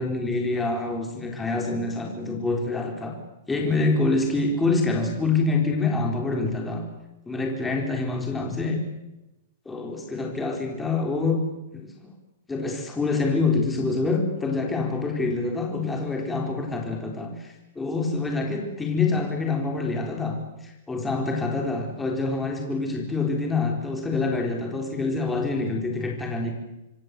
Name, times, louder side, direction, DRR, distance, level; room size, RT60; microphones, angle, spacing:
voice 1, 0.0-3.2 3.5-6.8 7.3-8.8 9.7-11.4 11.7-11.9 12.5-20.4 20.6-26.5, left 3 dB, 5° left, 1 dB, 4.1 m, -26 dB
26.5 x 24.0 x 8.3 m, 0.95 s
supercardioid pair, 170°, 0 cm